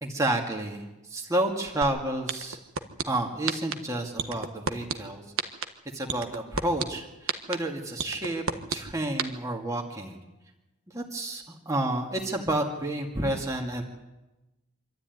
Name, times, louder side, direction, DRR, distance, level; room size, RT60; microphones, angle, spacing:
voice 1, 0.0-2.6 3.1-5.2 5.9-10.2 10.9-13.8, right 1 dB, 15° right, 0 dB, 2.2 m, -30 dB
sound 1, 1.8-1.9 2.3-3.0 3.5-3.7 4.2-4.9 5.4-5.6 6.1-6.8 7.3-7.5 8.0-8.8 9.2-9.3, right 5 dB, 70° right, 1.5 m, -27 dB
26.0 x 13.0 x 9.5 m, 1.0 s
head